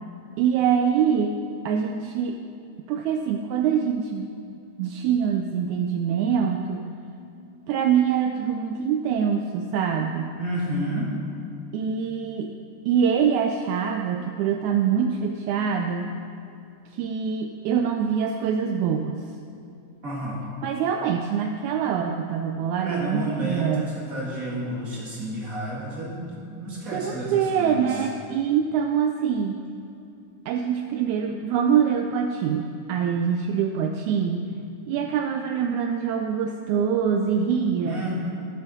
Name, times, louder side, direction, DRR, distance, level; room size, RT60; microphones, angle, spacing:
voice 1, 0.4-1.4 1.6-2.4 2.9-4.3 4.8-6.8 7.7-10.3 11.7-12.5 12.8-16.1 16.9-19.2 20.6-23.9 26.9-29.6 30.5-34.5 34.9-38.0, right 7 dB, 85° right, 4 dB, 1.7 m, -24 dB
voice 2, 10.4-11.1 20.0-20.4 22.8-28.0 37.8-38.1, right 1 dB, 35° right, -5 dB, 1.4 m, -31 dB
12.0 x 9.5 x 4.0 m, 2.6 s
omnidirectional pair, 3.8 m